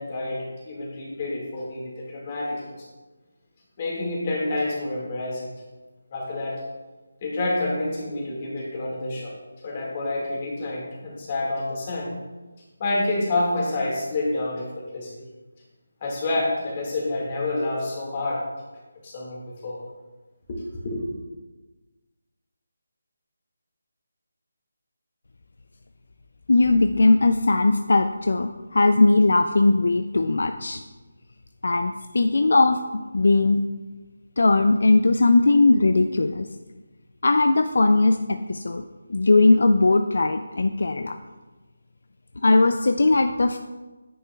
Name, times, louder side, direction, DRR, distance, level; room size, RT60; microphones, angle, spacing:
voice 1, 0.0-2.8 3.8-5.5 6.1-6.6 7.2-9.3 9.6-12.1 12.8-15.1 16.0-18.4 19.0-19.8 20.8-21.0, left 2 dB, 30° left, -3 dB, 1.9 m, -28 dB
voice 2, 26.5-30.8 31.6-32.8 33.1-33.6 34.4-36.5 37.2-38.8 39.1-41.2 42.4-43.6, left 2 dB, 70° left, 7 dB, 0.3 m, -19 dB
9.3 x 5.7 x 2.3 m, 1.2 s
figure-of-eight pair, 165°, 0 cm